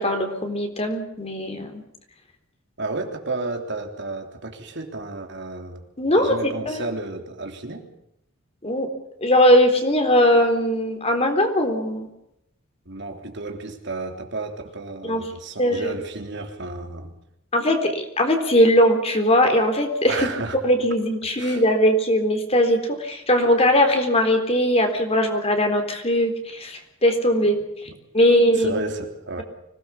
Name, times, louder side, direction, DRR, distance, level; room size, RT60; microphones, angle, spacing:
voice 1, 0.0-1.8 6.0-6.8 8.6-8.9 9.2-12.1 15.0-15.2 15.6-15.9 17.5-20.3 20.6-27.6 28.1-28.8, equal, 30° left, 5 dB, 3.8 m, -20 dB
voice 2, 2.8-5.9 6.2-7.9 12.9-17.1 20.1-20.6 21.4-21.6 28.6-29.4, right 2 dB, 55° right, 4 dB, 3.4 m, -32 dB
25.5 x 18.5 x 7.1 m, 0.79 s
head